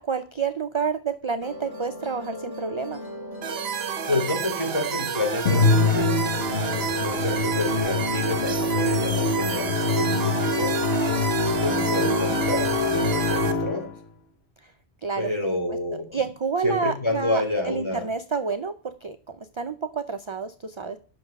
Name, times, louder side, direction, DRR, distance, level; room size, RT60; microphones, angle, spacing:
voice 1, 0.0-3.0 14.6-14.7 15.0-15.3 16.1-18.7 19.0-21.0, right 5 dB, 35° right, 9 dB, 0.5 m, -29 dB
Musical instrument, 1.4-7.8, equal, 20° right, 2.1 m, -39 dB
sound 1, 3.4-13.5, right 7 dB, 70° right, 1.0 m, -30 dB
voice 2, 4.1-6.4 6.8-10.8 11.5-13.9 15.2-16.2 16.6-18.0, left 2 dB, 25° left, 2 dB, 2.8 m, -29 dB
Musical instrument 2, 5.5-14.0, left 2 dB, 70° left, 1.3 m, -24 dB
8.4 x 6.3 x 5.2 m, 0.38 s
omnidirectional pair, 1.1 m